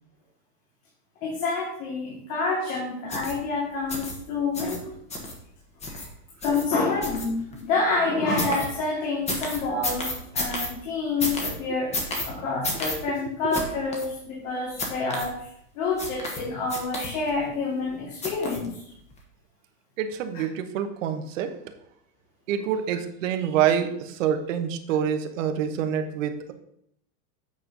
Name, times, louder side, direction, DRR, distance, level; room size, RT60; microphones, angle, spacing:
voice 1, 1.2-4.9 5.9-6.0 6.4-15.5 15.7-18.7 20.3-20.4, left 3 dB, 55° left, -4 dB, 2.6 m, -28 dB
sound 1, 3.1-3.3 3.9-4.1 4.5-4.8 5.1-5.3 5.8-6.1 6.4-6.6 7.0-7.6 8.4-8.7 9.3-10.7 11.2-11.5 11.9-12.3 12.6-13.0 13.5-13.6 13.9-14.1 14.8-15.3 16.0-16.4 16.7-17.3 18.2-18.7 19.1-19.2, left 2 dB, 15° left, 1.3 m, -30 dB
voice 2, 20.0-21.5 22.5-26.5, right 8 dB, 55° right, 8 dB, 1.1 m, -26 dB
8.6 x 4.3 x 5.3 m, 0.72 s
supercardioid pair, 155°, 47 cm